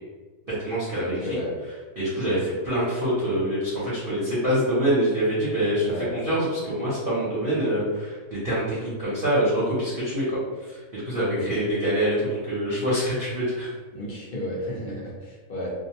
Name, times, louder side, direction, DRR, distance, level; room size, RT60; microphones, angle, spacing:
voice 1, 0.5-1.4 2.0-13.7, equal, 45° right, -9 dB, 0.8 m, -25 dB
voice 2, 1.0-1.5 5.8-6.1 11.3-11.5 13.9-15.7, left 1 dB, 60° left, -7 dB, 0.5 m, -33 dB
2.7 x 2.1 x 2.8 m, 1.4 s
omnidirectional pair, 1.7 m